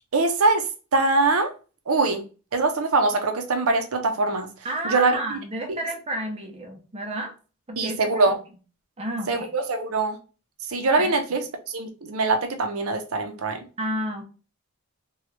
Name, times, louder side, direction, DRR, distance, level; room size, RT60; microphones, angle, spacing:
voice 1, 0.1-1.5 1.9-2.2 2.5-4.5 4.8-5.4 5.7-5.8 7.8-8.4 9.3-10.2 10.7-11.4 11.7-13.6, right 3 dB, 70° right, 0.6 m, -23 dB
voice 2, 4.6-7.3 7.7-8.1 9.0-9.5 11.0-11.2 13.8-14.2, right 1 dB, 25° right, 0.6 m, -31 dB
2.9 x 2.3 x 3.2 m
head